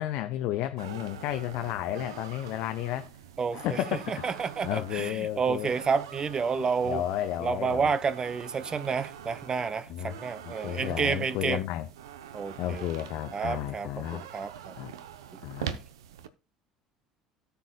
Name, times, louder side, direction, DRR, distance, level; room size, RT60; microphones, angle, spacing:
voice 1, 0.0-3.1 3.5-4.2 4.6-5.7 6.8-7.9 9.9-10.2 10.4-11.9 12.6-14.2 14.8-14.9 15.4-15.8, left 13 dB, 55° left, 0.7 m, -32 dB
sound 1, 0.8-16.3, right 9 dB, 70° right, 0.7 m, -44 dB
voice 2, 3.4-3.8 4.1-7.0 7.4-11.6 12.3-12.9 13.3-14.7, right 5 dB, 30° right, 0.7 m, -30 dB
17.0 x 7.0 x 2.3 m
figure-of-eight pair, 60°, 3 cm